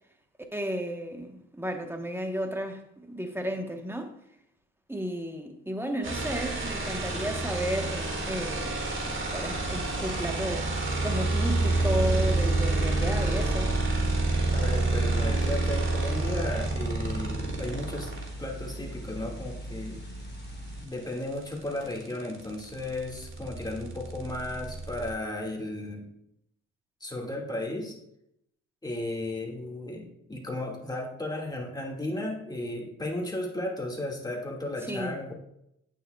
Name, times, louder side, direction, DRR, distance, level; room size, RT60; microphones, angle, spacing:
voice 1, 0.5-4.1 4.9-8.8 9.0-10.7 11.0-13.7 34.8-35.2, equal, 5° right, 1.0 m, -33 dB
sound 1, 6.0-18.3 20.4-20.5 20.7-25.1, right 2 dB, 40° right, 2.0 m, -28 dB
sound 2, 9.5-20.9, right 1 dB, 35° left, 0.9 m, -39 dB
voice 2, 14.5-18.1 18.4-20.0 20.8-26.1 27.0-28.0 28.8-35.3, left 1 dB, 15° left, 1.9 m, -34 dB
8.4 x 6.3 x 2.3 m
supercardioid pair, 65°, 31 cm